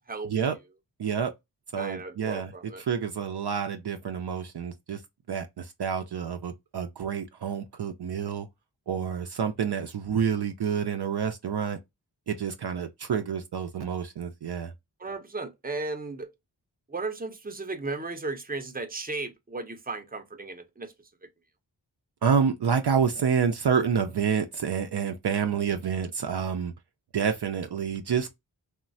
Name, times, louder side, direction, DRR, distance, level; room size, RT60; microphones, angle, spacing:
voice 1, 0.2-0.6 1.0-1.3 1.7-2.5 2.9-5.0 5.3-8.5 8.9-11.8 12.3-14.7 22.2-26.7 27.1-28.3, right 7 dB, 65° right, 0.5 m, -28 dB
voice 2, 1.8-2.8 15.0-16.3 16.9-20.9, right 3 dB, 20° right, 0.6 m, -35 dB
3.0 x 2.1 x 2.5 m
wide cardioid pair, 45°, 44 cm